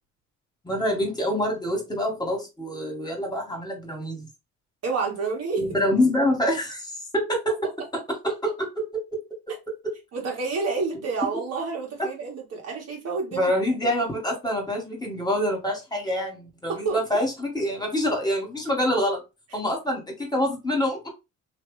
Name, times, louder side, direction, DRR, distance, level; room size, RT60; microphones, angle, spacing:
voice 1, 0.7-4.3 5.6-7.7 8.2-9.2 9.8-9.9 13.3-19.2 19.5-21.1, equal, 15° left, 1.9 m, -26 dB
voice 2, 4.8-5.6 10.1-13.5 16.7-17.0, right 4 dB, 55° right, 1.7 m, -29 dB
3.0 x 2.9 x 3.2 m
cardioid pair, 90°, 30 cm